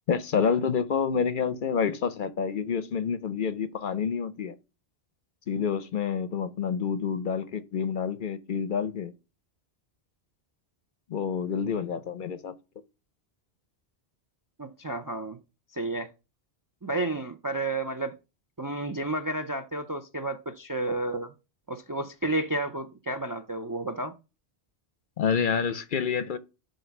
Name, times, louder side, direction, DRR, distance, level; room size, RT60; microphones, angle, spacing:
voice 1, 0.1-4.5 5.5-9.1 11.1-12.5 25.2-26.4, left 6 dB, 55° left, 0.7 m, -28 dB
voice 2, 14.6-15.4 15.7-16.1 16.8-18.2 18.6-21.3 21.7-24.1, right 2 dB, 30° right, 0.4 m, -31 dB
7.7 x 2.6 x 5.8 m
omnidirectional pair, 1.1 m